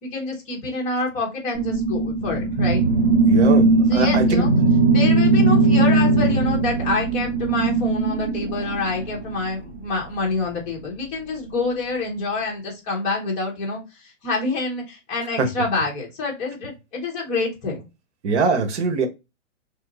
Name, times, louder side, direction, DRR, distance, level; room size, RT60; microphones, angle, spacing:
voice 1, 0.0-2.8 3.9-4.5 4.9-17.9, left 3 dB, 20° left, 1.1 m, -27 dB
sound 1, 1.5-9.3, right 3 dB, 30° right, 0.8 m, -19 dB
voice 2, 3.3-4.4 15.4-15.5 18.2-19.1, right 3 dB, 65° right, 1.0 m, -22 dB
3.6 x 2.7 x 3.8 m
hypercardioid pair, 165°, 37 cm